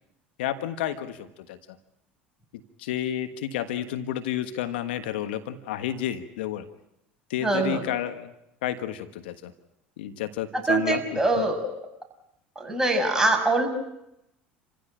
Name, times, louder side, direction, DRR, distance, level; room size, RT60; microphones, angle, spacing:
voice 1, 0.4-1.8 2.8-6.7 7.3-8.3 8.6-9.5 10.0-11.5, left 11 dB, 80° left, 9 dB, 1.5 m, -31 dB
voice 2, 7.4-7.8 10.5-11.7 12.6-13.7, right 2 dB, 10° right, 3 dB, 6.3 m, -23 dB
28.5 x 15.5 x 9.0 m, 0.85 s
hypercardioid pair, 80°, 6 cm